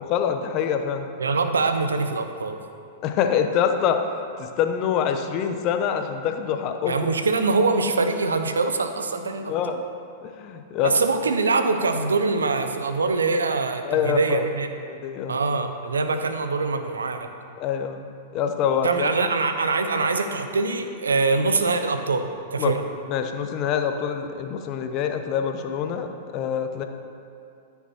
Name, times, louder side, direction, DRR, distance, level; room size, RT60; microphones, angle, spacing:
voice 1, 0.0-1.1 3.0-4.1 4.4-6.9 9.5-9.8 10.2-10.9 13.8-14.4 14.9-15.4 17.6-18.0 18.3-19.1 22.6-22.8 23.1-26.1 26.3-26.8, left 8 dB, 45° left, 6 dB, 0.9 m, -25 dB
voice 2, 1.2-2.6 6.9-9.8 10.8-14.7 15.3-17.3 18.8-22.2 22.5-22.8, right 3 dB, 90° right, 7 dB, 0.7 m, -23 dB
14.0 x 5.9 x 4.3 m, 2.5 s
hypercardioid pair, 110°, 0 cm